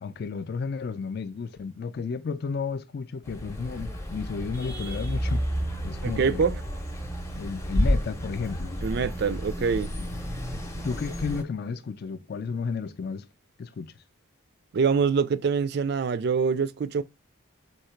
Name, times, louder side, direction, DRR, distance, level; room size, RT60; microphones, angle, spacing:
voice 1, 0.0-5.4 5.8-6.5 7.4-8.7 10.0-10.1 10.8-13.3 13.6-13.9, left 5 dB, 50° left, 0.3 m, -32 dB
sound 1, 3.2-11.4, equal, 15° left, 0.6 m, -31 dB
voice 2, 6.0-6.6 8.8-10.0 10.8-10.9 14.7-17.0, right 5 dB, 50° right, 0.3 m, -25 dB
3.8 x 2.7 x 4.4 m
head